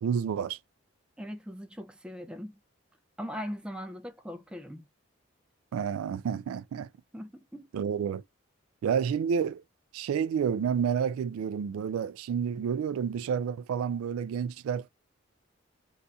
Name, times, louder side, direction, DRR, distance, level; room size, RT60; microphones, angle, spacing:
voice 1, 0.0-0.6 5.7-6.9 7.7-8.2 8.8-9.6 9.9-14.9, right 7 dB, 90° right, 0.3 m, -29 dB
voice 2, 1.2-2.6 3.2-4.9 7.1-7.7, equal, 5° right, 0.3 m, -40 dB
4.1 x 2.4 x 2.3 m
head